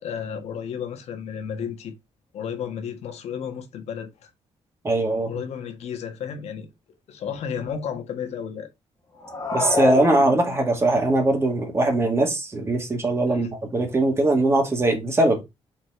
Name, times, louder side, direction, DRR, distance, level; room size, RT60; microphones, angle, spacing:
voice 1, 0.0-1.9 2.3-4.3 5.2-6.7 7.1-8.7 13.3-13.5, left 7 dB, 75° left, 1.5 m, -33 dB
voice 2, 4.8-5.3 9.5-15.4, right 2 dB, 25° right, 2.1 m, -21 dB
sound 1, 9.2-10.8, left 3 dB, 25° left, 1.5 m, -27 dB
4.8 x 4.4 x 4.5 m
cardioid pair, 135°, 11 cm